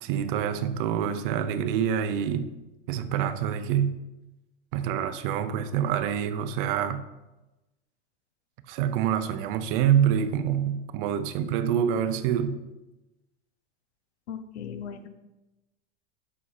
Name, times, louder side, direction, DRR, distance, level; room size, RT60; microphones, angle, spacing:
voice 1, 0.0-2.5 2.9-4.0 4.7-7.0 8.7-12.6, right 9 dB, 55° right, 11 dB, 0.7 m, -26 dB
voice 2, 14.3-15.1, left 7 dB, 75° left, 9 dB, 0.9 m, -37 dB
7.3 x 5.5 x 4.2 m, 1.0 s
supercardioid pair, 140°, 33 cm